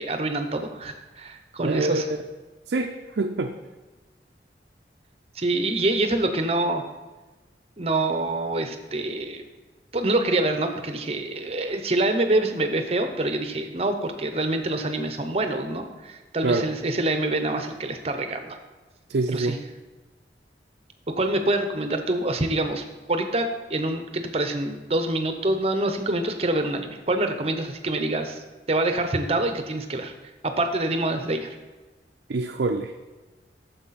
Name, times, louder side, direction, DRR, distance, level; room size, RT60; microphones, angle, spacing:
voice 1, 0.0-2.1 5.4-6.8 7.8-9.4 9.9-18.6 19.3-19.6 21.1-28.4 28.7-30.1 30.4-31.5, right 2 dB, 35° right, 7 dB, 0.7 m, -26 dB
voice 2, 1.6-2.2 2.7-3.6 16.4-16.7 19.1-19.6 32.3-32.9, right 3 dB, 75° right, 3 dB, 0.5 m, -25 dB
9.6 x 7.0 x 4.1 m, 1.2 s
head